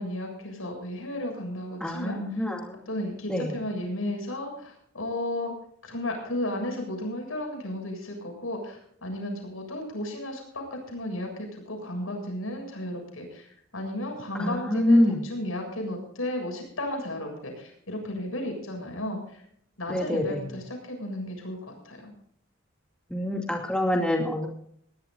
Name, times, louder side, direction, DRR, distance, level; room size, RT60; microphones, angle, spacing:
voice 1, 0.0-2.5 2.9-5.5 5.8-19.4 19.8-22.1, left 1 dB, 80° left, 3 dB, 7.2 m, -34 dB
voice 2, 1.8-2.8 3.3-3.5 14.4-15.2 19.9-20.4 23.1-24.5, left 1 dB, 5° left, 0 dB, 2.6 m, -25 dB
20.0 x 18.5 x 2.7 m, 0.65 s
head